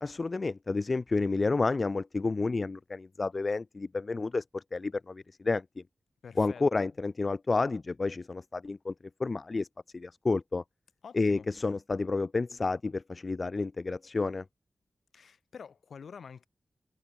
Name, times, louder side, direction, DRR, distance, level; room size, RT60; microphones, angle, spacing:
voice 1, 0.0-5.8 6.4-8.9 9.2-9.7 9.9-10.6 11.1-14.4, left 3 dB, 35° left, 2.6 m, -30 dB
voice 2, 6.2-6.6 11.0-11.5 15.1-16.5, left 6 dB, 80° left, 5.5 m, -47 dB
wide cardioid pair, 140°, 0 cm